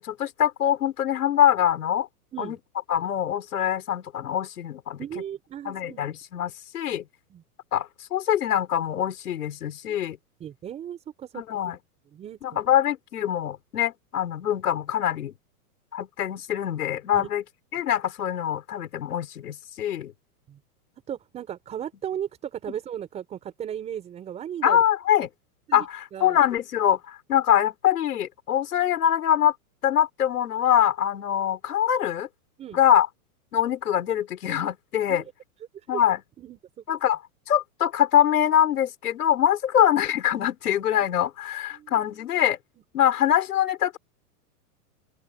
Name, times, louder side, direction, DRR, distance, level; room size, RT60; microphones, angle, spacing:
voice 1, 0.0-2.1 2.4-2.6 2.9-5.0 5.6-7.1 7.7-10.2 11.3-11.8 12.4-15.3 15.9-17.4 17.7-20.1 24.6-25.3 25.7-29.5 29.8-32.3 32.7-33.1 33.5-35.2 35.9-36.2 36.9-37.2 37.5-42.6 42.9-44.0, left 10 dB, 75° left, 6.5 m, -24 dB
voice 2, 5.0-6.2 7.3-7.4 9.9-10.0 10.4-11.8 12.1-12.4 17.1-17.3 20.5-20.6 21.1-24.8 25.7-25.9 26.1-26.4 32.6-32.8 35.1-35.2 35.9-36.0 36.4-36.8 41.0-41.1 41.7-42.0, right 9 dB, 15° right, 4.8 m, -36 dB
open air
supercardioid pair, 175°, 46 cm